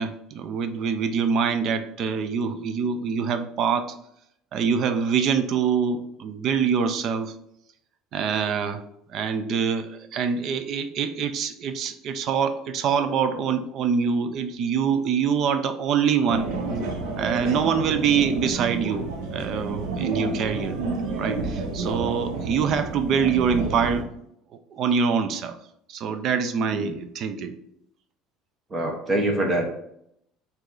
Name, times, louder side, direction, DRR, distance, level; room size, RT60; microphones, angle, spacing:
voice 1, 0.0-3.9 4.5-7.3 8.1-8.8 9.1-16.5 17.2-20.8 21.2-24.1 24.7-25.6 25.9-27.6, right 6 dB, 40° right, 9 dB, 0.4 m, -25 dB
sound 1, 16.3-24.0, right 3 dB, 80° right, 0.8 m, -30 dB
voice 2, 26.6-26.9 28.7-29.7, right 1 dB, 20° right, 2 dB, 0.9 m, -25 dB
4.8 x 2.7 x 3.8 m, 0.75 s
cardioid pair, 160°, 0 cm